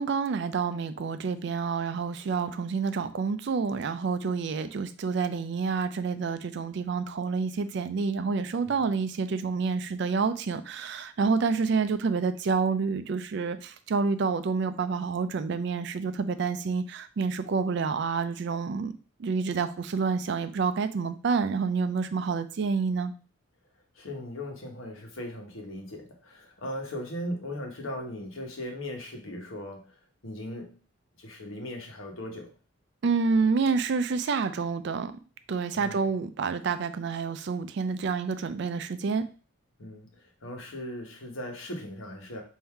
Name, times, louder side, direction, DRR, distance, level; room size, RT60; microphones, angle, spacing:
voice 1, 0.0-18.9 19.2-23.1 33.0-35.1 35.5-39.2, right 5 dB, 55° right, 11 dB, 0.4 m, -28 dB
voice 2, 24.0-30.0 30.2-30.7 31.2-32.5 35.7-36.0 39.8-42.4, left 1 dB, 80° left, 2 dB, 1.1 m, -38 dB
3.6 x 2.7 x 4.4 m, 0.37 s
head